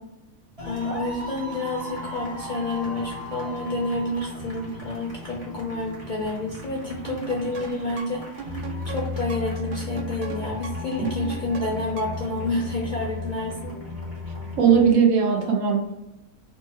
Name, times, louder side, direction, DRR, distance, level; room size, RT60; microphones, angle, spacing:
voice 1, 0.6-8.5 8.9-13.7, left 2 dB, 50° left, -3 dB, 0.5 m, -29 dB
sound 1, 0.6-14.9, left 2 dB, 30° right, 1.0 m, -35 dB
sound 2, 7.0-12.3, right 7 dB, 90° right, 0.4 m, -39 dB
voice 2, 14.6-15.9, right 6 dB, 70° right, 1 dB, 1.1 m, -19 dB
3.2 x 3.0 x 3.3 m, 0.98 s
omnidirectional pair, 1.5 m